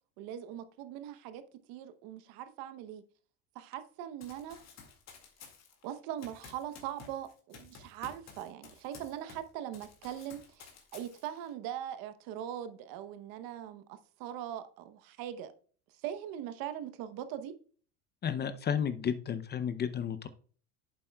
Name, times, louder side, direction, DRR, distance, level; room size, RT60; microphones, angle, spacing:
voice 1, 0.2-1.4 1.7-3.0 3.5-4.6 5.8-15.5 16.0-17.5, right 11 dB, 60° right, 0.9 m, -41 dB
Run, 4.2-9.5 9.7-11.5, left 5 dB, 40° left, 2.1 m, -53 dB
voice 2, 18.2-20.3, left 8 dB, 25° left, 0.6 m, -32 dB
8.5 x 7.5 x 2.3 m
supercardioid pair, 115°, 39 cm